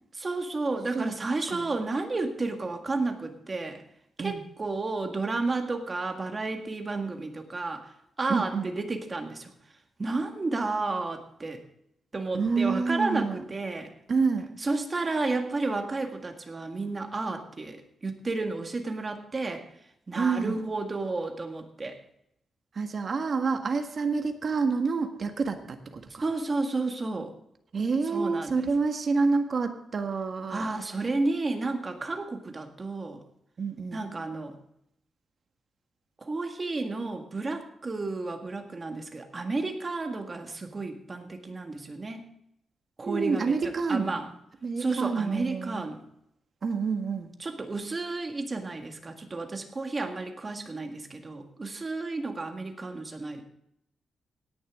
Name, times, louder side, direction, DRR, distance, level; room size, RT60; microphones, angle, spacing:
voice 1, 0.2-3.8 4.2-7.9 8.2-9.5 10.0-11.6 12.1-13.9 14.6-19.6 20.1-22.0 26.2-27.3 28.1-28.6 30.5-33.2 33.9-34.6 36.2-42.3 43.0-43.5 43.9-44.3 44.8-46.1 47.4-53.4, right 3 dB, 25° right, 4 dB, 1.7 m, -32 dB
voice 2, 8.3-8.7 12.3-13.4 14.1-14.5 20.1-20.6 22.7-26.2 27.7-30.7 33.6-34.1 43.0-44.2 44.6-45.8 46.6-47.3, right 4 dB, 45° right, 6 dB, 1.6 m, -28 dB
17.5 x 10.5 x 3.7 m, 0.75 s
wide cardioid pair, 130°, 0 cm